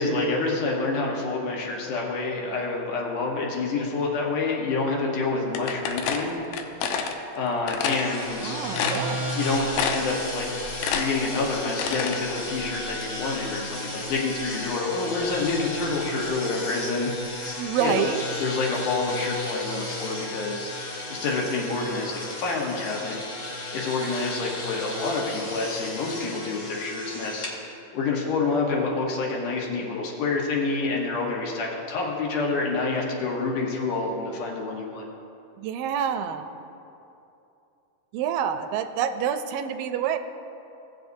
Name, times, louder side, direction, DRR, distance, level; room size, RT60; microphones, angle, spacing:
voice 1, 0.0-6.9 7.3-8.6 9.4-18.1 18.4-20.7 21.1-23.4 23.7-35.0, left 3 dB, 70° left, -2 dB, 2.6 m, -28 dB
sound 1, 5.5-7.2 7.7-8.1 8.4-8.5 8.7-9.4 9.7-10.2 10.5-12.2, left 7 dB, 85° left, 2.3 m, -28 dB
sound 2, 7.9-27.5, left 1 dB, 40° left, 1.0 m, -34 dB
voice 2, 8.4-9.3 17.6-18.2 35.6-36.5 38.1-40.2, right 8 dB, 85° right, 9 dB, 2.2 m, -27 dB
17.5 x 7.8 x 2.7 m, 2.8 s
omnidirectional pair, 3.9 m